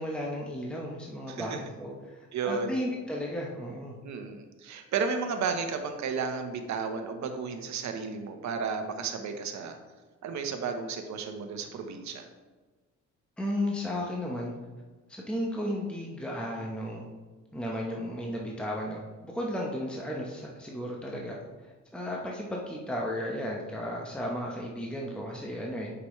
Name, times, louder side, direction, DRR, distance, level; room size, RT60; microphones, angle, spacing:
voice 1, 0.0-4.0 13.4-14.5 15.1-17.1 17.5-21.4 21.9-25.9, left 1 dB, 5° left, -2 dB, 1.0 m, -34 dB
voice 2, 1.3-1.6 2.3-2.8 4.0-9.8 10.2-12.3, right 5 dB, 65° right, 6 dB, 1.0 m, -33 dB
8.2 x 6.0 x 3.2 m, 1.3 s
cardioid pair, 90°, 30 cm